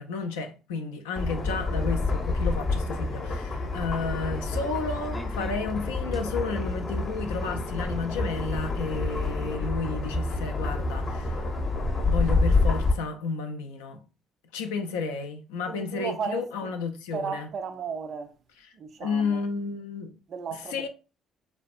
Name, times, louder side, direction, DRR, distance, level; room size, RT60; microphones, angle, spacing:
voice 1, 0.0-11.4 12.0-14.0 14.5-17.5 19.0-20.1 20.7-20.9, left 4 dB, 85° left, 0.3 m, -32 dB
sound 1, 1.1-12.9, left 3 dB, 45° left, 0.7 m, -28 dB
sound 2, 5.0-5.5 6.1-9.6, equal, ahead, 0.6 m, -43 dB
voice 2, 15.7-16.7 17.1-18.3 18.7-19.4 20.3-20.9, right 6 dB, 55° right, 0.3 m, -35 dB
2.6 x 2.1 x 2.4 m
hypercardioid pair, 55°, 0 cm